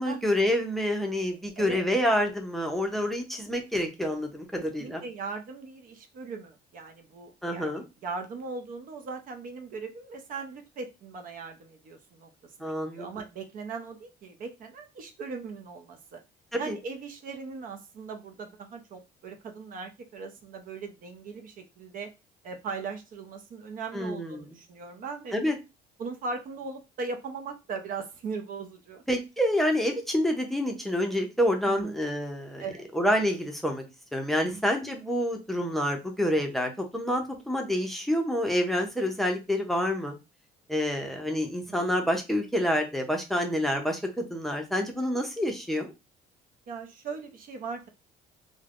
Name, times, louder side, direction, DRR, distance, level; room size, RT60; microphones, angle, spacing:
voice 1, 0.0-5.0 7.4-7.8 12.6-13.1 16.5-16.8 23.9-24.5 25.3-25.5 29.1-32.6 32.9-33.8 34.1-40.1 40.7-45.9, equal, ahead, 3 dB, 0.6 m, -28 dB
voice 2, 1.6-1.9 4.8-16.2 16.6-22.1 22.4-25.4 26.0-29.0 31.6-32.0 32.6-32.9 34.4-34.7 41.7-41.9 46.7-47.9, right 4 dB, 55° right, 5 dB, 0.6 m, -39 dB
3.2 x 2.2 x 2.4 m, 0.25 s
cardioid pair, 95°, 17 cm